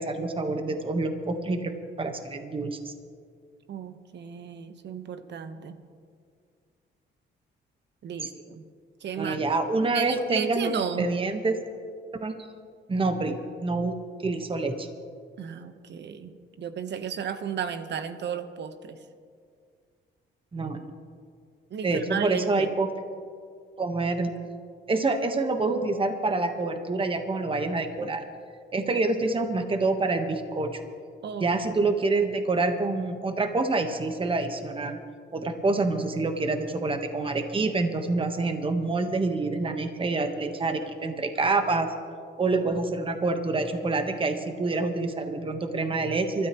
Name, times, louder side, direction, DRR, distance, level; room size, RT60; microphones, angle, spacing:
voice 1, 0.0-1.7 2.0-2.9 8.2-8.3 9.2-11.5 12.1-12.3 12.9-14.9 20.5-20.9 21.8-22.9 23.8-24.3 24.9-28.2 28.7-30.8 31.4-35.0 35.3-41.9 42.4-46.5, right 3 dB, 25° right, 6 dB, 1.3 m, -27 dB
voice 2, 3.7-5.8 8.0-8.6 9.0-9.4 9.9-11.1 15.4-19.0 21.7-22.7 31.2-31.5, right 7 dB, 60° right, 9 dB, 1.1 m, -34 dB
24.5 x 13.0 x 3.1 m, 2.1 s
cardioid pair, 90°, 20 cm